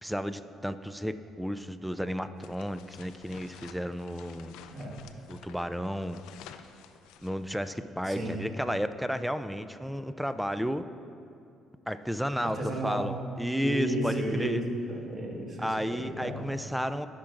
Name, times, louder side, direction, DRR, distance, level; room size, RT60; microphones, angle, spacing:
voice 1, 0.0-4.6 5.3-6.2 7.2-10.8 11.9-14.6 15.6-17.1, equal, ahead, 11 dB, 0.4 m, -32 dB
sound 1, 2.4-7.9, left 9 dB, 85° left, 0.4 m, -52 dB
voice 2, 4.7-5.0 8.1-8.4 12.4-13.0 13.6-14.6 14.9-16.4, right 1 dB, 40° right, -2 dB, 1.7 m, -33 dB
14.5 x 5.9 x 2.5 m, 2.5 s
cardioid pair, 85°, 0 cm